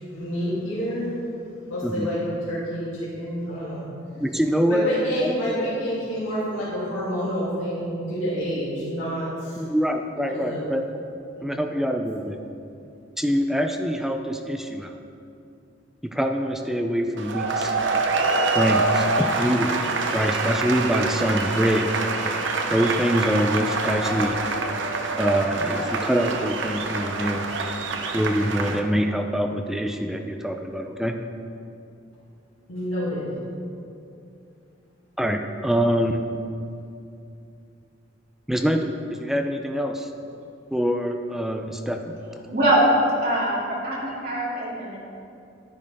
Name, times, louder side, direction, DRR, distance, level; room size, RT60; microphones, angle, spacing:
voice 1, 0.1-1.1 1.7-3.8 4.7-9.6 10.3-10.7 11.4-11.6 32.7-33.4, equal, 85° left, -10 dB, 2.7 m, -28 dB
voice 2, 4.2-4.9 5.2-5.3 9.6-11.1 11.4-12.4 13.2-15.0 16.0-17.7 18.5-21.9 22.7-24.4 25.2-27.5 28.1-31.2 35.2-36.2 38.5-40.1 40.7-42.2 44.1-44.2, equal, ahead, 4 dB, 0.4 m, -25 dB
sound 1, 17.2-28.8, right 3 dB, 65° right, 0.8 m, -26 dB
voice 3, 42.5-42.8 43.2-45.0, right 1 dB, 50° right, -7 dB, 2.7 m, -23 dB
11.0 x 10.5 x 3.5 m, 2.6 s
head